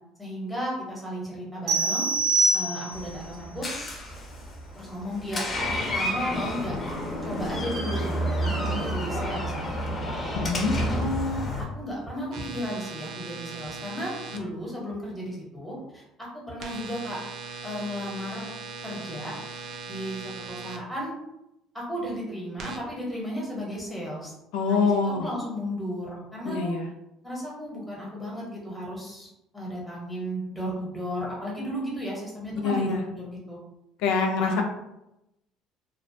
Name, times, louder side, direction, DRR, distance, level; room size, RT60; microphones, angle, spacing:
voice 1, 0.2-2.1 2.5-3.7 4.7-5.4 5.9-6.8 7.2-10.1 10.8-11.4 11.7-16.0 16.3-17.2 17.6-18.5 18.8-19.3 19.9-21.1 21.9-24.3 24.7-26.7 27.2-33.6 34.3-34.6, equal, ahead, -5 dB, 0.8 m, -34 dB
sound 1, 1.7-3.2, right 3 dB, 85° right, 1.1 m, -24 dB
Door, 2.9-11.6, equal, 25° left, 0.5 m, -30 dB
voice 2, 10.3-10.7 24.5-25.2 26.5-26.9 32.6-33.0 34.0-34.6, left 4 dB, 80° left, 2 dB, 0.3 m, -24 dB
sound 2, 12.3-14.4 16.6-20.8 22.6-22.8, right 4 dB, 55° right, 0.3 m, -39 dB
2.3 x 2.1 x 2.6 m, 0.88 s
cardioid pair, 145°, 0 cm